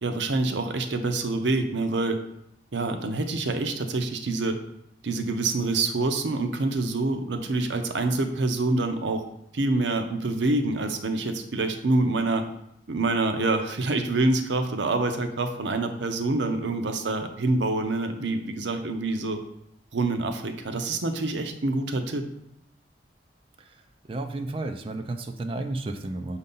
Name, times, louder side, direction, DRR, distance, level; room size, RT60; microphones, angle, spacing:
voice 1, 0.0-2.2 2.7-4.6 5.0-9.2 9.5-12.5 12.9-19.4 19.9-22.3, right 2 dB, 90° right, 7 dB, 0.7 m, -26 dB
voice 2, 24.1-26.4, right 2 dB, 30° right, 6 dB, 0.4 m, -32 dB
6.5 x 2.7 x 5.3 m, 0.77 s
head